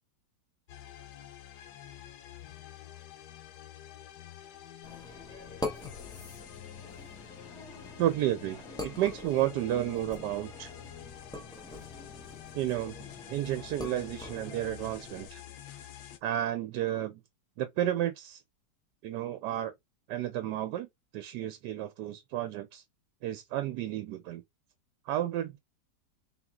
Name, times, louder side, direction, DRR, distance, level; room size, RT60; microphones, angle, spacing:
sound 1, 0.7-16.2, left 11 dB, 70° left, 1.3 m, -48 dB
sound 2, 4.8-15.3, left 1 dB, 5° left, 0.3 m, -44 dB
voice 1, 8.0-10.7 12.5-15.4 16.2-17.2 17.6-18.4 19.0-19.7 20.1-22.8 23.2-24.4 25.0-25.6, right 12 dB, 75° right, 1.2 m, -32 dB
3.8 x 2.8 x 3.6 m
omnidirectional pair, 1.9 m